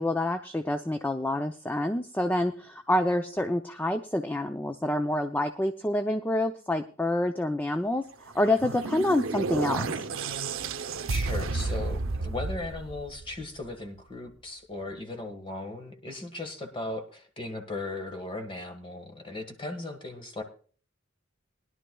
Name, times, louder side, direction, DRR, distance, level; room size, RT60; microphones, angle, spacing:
voice 1, 0.0-8.0 8.3-10.1, left 1 dB, 10° left, 7 dB, 0.5 m, -27 dB
sound 1, 8.2-13.6, right 3 dB, 90° right, 0.7 m, -32 dB
voice 2, 11.1-20.4, left 2 dB, 25° left, 5 dB, 1.5 m, -37 dB
20.5 x 11.0 x 2.3 m, 0.42 s
head